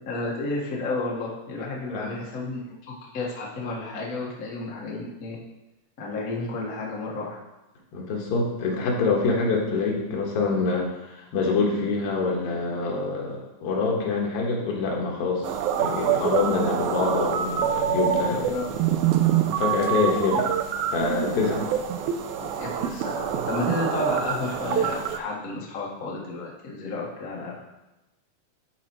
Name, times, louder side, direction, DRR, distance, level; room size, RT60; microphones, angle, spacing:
voice 1, 0.0-5.4 6.0-7.4 18.4-18.7 22.5-27.6, left 3 dB, 70° left, -2 dB, 0.7 m, -32 dB
voice 2, 7.9-15.5 15.8-18.5 19.6-20.5 20.9-21.6, left 4 dB, 90° left, -1 dB, 3.2 m, -25 dB
sound 1, 15.4-25.2, right 9 dB, 85° right, 1.7 m, -26 dB
11.0 x 4.3 x 4.5 m, 1.0 s
omnidirectional pair, 4.1 m